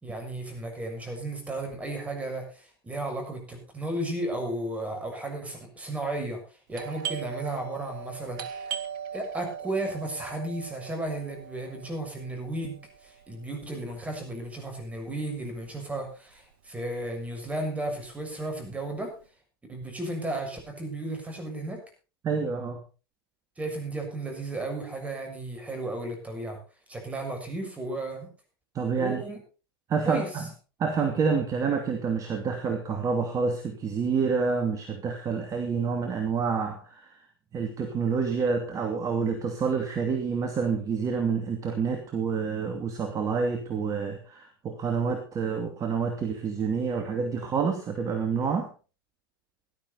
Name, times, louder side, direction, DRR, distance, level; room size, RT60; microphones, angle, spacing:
voice 1, 0.0-8.8 9.1-19.1 19.7-21.8 23.6-26.6 26.9-28.3 29.0-29.4 30.0-30.5, right 2 dB, 10° right, 4 dB, 6.8 m, -34 dB
Doorbell, 6.7-16.1 16.4-16.5 17.1-17.4 17.8-19.1, right 8 dB, 60° right, 2.1 m, -40 dB
voice 2, 22.2-22.8 28.7-29.2 29.9-30.4 30.8-37.1 37.5-48.7, right 5 dB, 25° right, 6 dB, 2.6 m, -28 dB
18.0 x 12.0 x 4.1 m, 0.34 s
hypercardioid pair, 105°, 13 cm